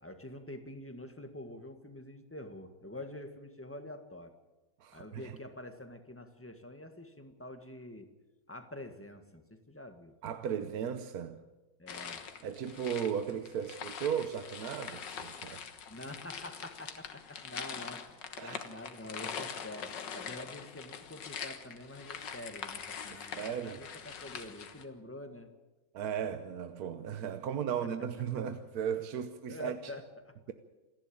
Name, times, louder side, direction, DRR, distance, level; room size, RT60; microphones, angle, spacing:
voice 1, 0.0-4.3 4.9-8.1 8.5-10.1 11.8-12.3 15.9-18.0 18.4-25.5 27.8-27.9 29.5-30.3, left 1 dB, 5° left, 1.5 m, -46 dB
voice 2, 4.8-5.3 10.2-11.4 12.4-15.6 18.4-18.6 23.4-23.8 25.9-29.8, right 8 dB, 60° right, 1.2 m, -36 dB
sound 1, 11.9-24.8, left 7 dB, 60° left, 2.0 m, -43 dB
28.0 x 11.0 x 8.7 m
omnidirectional pair, 2.2 m